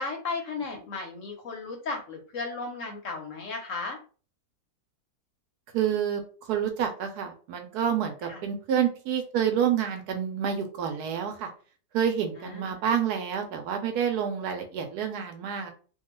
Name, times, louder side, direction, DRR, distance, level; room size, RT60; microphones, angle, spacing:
voice 1, 0.0-4.0 8.2-8.4 12.4-12.8, left 3 dB, 65° left, 1 dB, 0.8 m, -35 dB
voice 2, 5.7-11.5 11.9-15.7, right 8 dB, 70° right, 5 dB, 1.1 m, -28 dB
2.7 x 2.3 x 2.9 m, 0.38 s
omnidirectional pair, 1.8 m